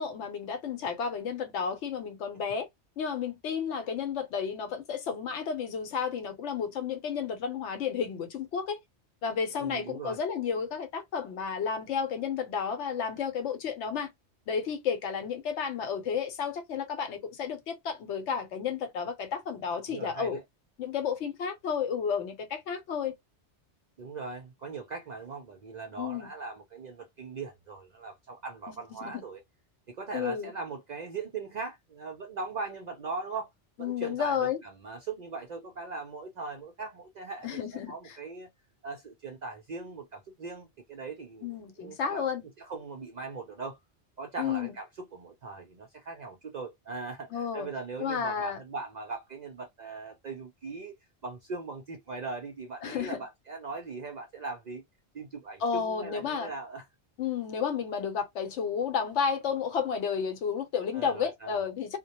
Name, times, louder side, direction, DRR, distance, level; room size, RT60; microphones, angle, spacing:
voice 1, 0.0-2.7 3.0-8.8 9.2-14.1 14.5-20.4 20.8-23.1 26.0-26.3 29.0-29.2 30.1-30.5 33.8-34.6 37.4-37.9 41.4-42.4 44.4-44.7 47.3-47.7 48.0-48.6 52.8-53.2 55.6-56.5 57.2-62.0, left 6 dB, 80° left, 1.0 m, -32 dB
voice 2, 9.6-10.2 19.9-20.4 24.0-29.4 29.9-33.5 33.8-37.6 37.9-38.5 38.8-42.3 42.6-43.8 44.2-50.9 51.2-54.8 55.1-56.8 60.9-61.6, right 4 dB, 60° right, 0.4 m, -40 dB
2.1 x 2.1 x 2.8 m
omnidirectional pair, 1.2 m